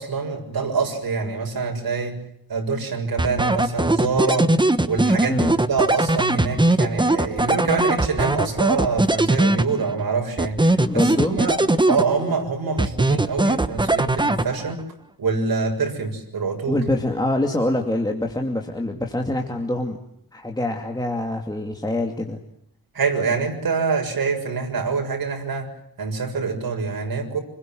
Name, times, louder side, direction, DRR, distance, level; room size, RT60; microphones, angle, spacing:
voice 1, 0.0-2.2 2.5-4.5 4.8-11.6 11.9-14.8 15.2-16.8 22.9-25.7 26.0-27.4, right 4 dB, 75° right, 3 dB, 7.1 m, -25 dB
sound 1, 3.2-10.0 10.4-12.4 12.8-14.8, right 2 dB, 15° right, 1.1 m, -20 dB
voice 2, 10.7-11.4 16.7-20.0 20.3-22.4, left 1 dB, 10° left, 2 dB, 2.5 m, -25 dB
29.0 x 21.5 x 7.8 m, 0.72 s
wide cardioid pair, 165°, 36 cm